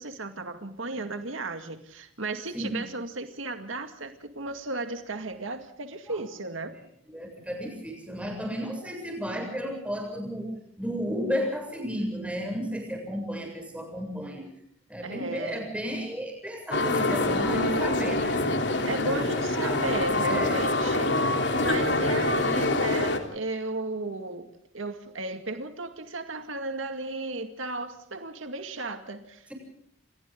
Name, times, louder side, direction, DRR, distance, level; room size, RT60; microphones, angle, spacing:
voice 1, 0.0-6.7 15.0-15.7 18.8-29.5, right 2 dB, 80° right, 2.2 m, -35 dB
voice 2, 7.1-10.5 10.8-14.5 14.9-18.4 19.1-19.2 19.5-19.9 20.2-20.6, equal, 5° right, 7.8 m, -33 dB
sound 1, 16.7-23.2, left 2 dB, 60° left, 3.5 m, -25 dB
29.5 x 27.5 x 3.9 m
head